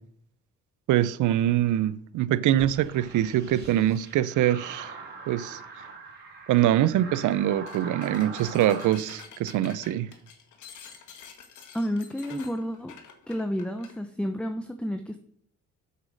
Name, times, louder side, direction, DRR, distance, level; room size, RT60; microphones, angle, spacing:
voice 1, 0.9-4.9 5.3-5.6 6.5-10.1, right 12 dB, 80° right, 0.6 m, -24 dB
sound 1, 2.5-9.0, right 4 dB, 35° right, 3.6 m, -42 dB
sound 2, 7.1-7.4 7.7-14.0, left 6 dB, 75° left, 1.8 m, -48 dB
voice 2, 11.7-12.9 13.3-15.2, equal, 5° left, 0.8 m, -30 dB
8.3 x 5.7 x 6.3 m
cardioid pair, 90°, 30 cm